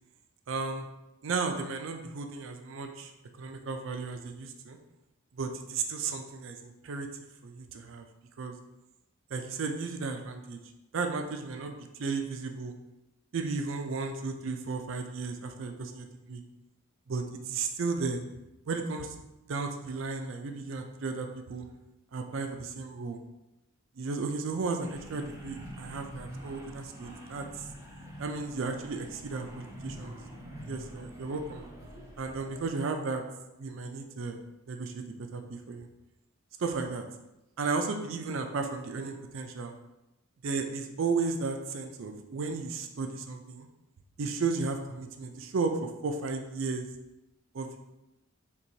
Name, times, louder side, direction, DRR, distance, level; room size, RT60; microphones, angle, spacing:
voice 1, 0.5-0.9 1.2-3.1 3.4-4.8 5.3-7.1 7.4-8.0 8.4-8.5 9.3-10.6 10.9-12.7 13.3-16.4 17.1-18.2 18.7-19.2 19.5-21.7 22.1-23.2 24.0-27.7 28.2-30.2 30.7-31.7 32.2-33.2 33.6-34.4 34.7-35.9 36.6-37.0 37.6-39.7 40.4-43.7 44.2-46.9 47.5-47.8, right 4 dB, 65° right, 5 dB, 0.4 m, -34 dB
sound 1, 24.8-32.7, equal, 15° right, 0.6 m, -45 dB
4.5 x 2.9 x 2.7 m, 0.95 s
head